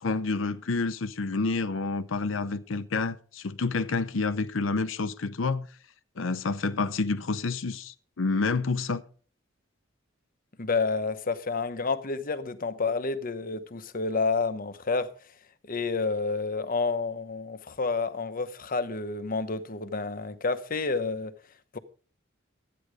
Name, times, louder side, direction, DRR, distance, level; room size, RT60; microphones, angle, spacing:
voice 1, 0.0-5.7 6.2-9.0, left 3 dB, 90° left, 0.7 m, -29 dB
voice 2, 10.6-15.1 15.7-21.3 21.7-21.8, left 4 dB, 45° left, 1.0 m, -29 dB
12.5 x 9.5 x 4.9 m
head